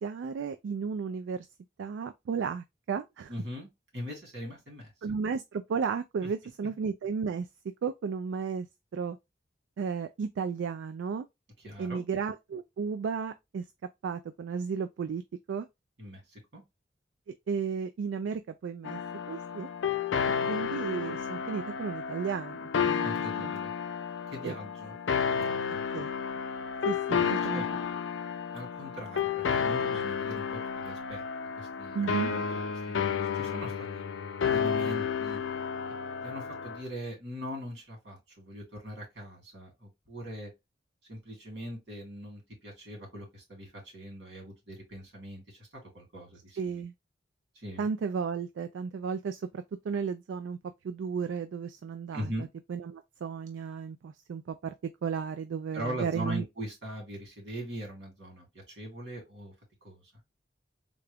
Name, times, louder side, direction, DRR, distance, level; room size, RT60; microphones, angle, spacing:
voice 1, 0.0-1.5 1.8-3.3 5.0-7.5 7.8-8.7 8.9-9.2 9.8-11.3 11.8-13.6 14.0-15.2 15.5-15.7 17.5-19.0 19.3-19.7 20.5-23.5 24.4-24.5 25.9-26.1 26.9-27.6 31.9-32.3 46.6-46.9 47.8-50.6 50.8-52.3 52.7-54.7 55.0-56.4, right 6 dB, 85° right, 0.3 m, -34 dB
voice 2, 3.3-3.7 3.9-4.9 6.2-6.3 11.6-12.0 16.0-16.6 23.0-23.7 24.3-24.9 25.3-25.8 27.1-27.7 28.5-31.2 31.6-32.0 32.3-32.6 33.0-34.0 34.5-35.4 36.2-40.5 41.1-45.6 45.9-46.8 47.5-47.9 52.1-52.5 55.7-59.5 59.8-60.0, equal, 65° right, 2.5 m, -41 dB
sound 1, 18.8-36.8, left 6 dB, 90° left, 0.4 m, -31 dB
3.7 x 2.3 x 3.3 m
head